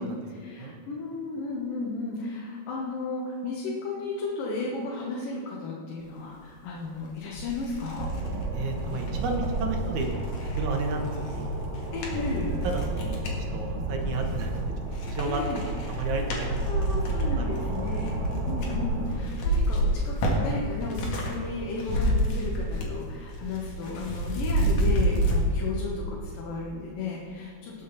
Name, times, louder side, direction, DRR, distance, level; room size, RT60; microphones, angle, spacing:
voice 1, 0.0-8.1 11.9-12.5 15.3-15.6 16.7-27.8, left 3 dB, 85° left, -3 dB, 3.1 m, -34 dB
sound 1, 6.8-6.9 7.3-13.4 14.0-14.6 14.9-21.4 21.6-23.0 23.3-25.4, right 1 dB, 70° left, 3.4 m, -29 dB
sound 2, 8.0-19.2, right 2 dB, 90° right, 3.6 m, -32 dB
voice 2, 8.5-10.1 10.5-11.6 12.6-14.5 15.0-16.7 17.4-17.5 17.9-18.1, right 3 dB, 65° right, 3 dB, 2.5 m, -32 dB
19.5 x 7.4 x 4.2 m, 2.4 s
omnidirectional pair, 3.8 m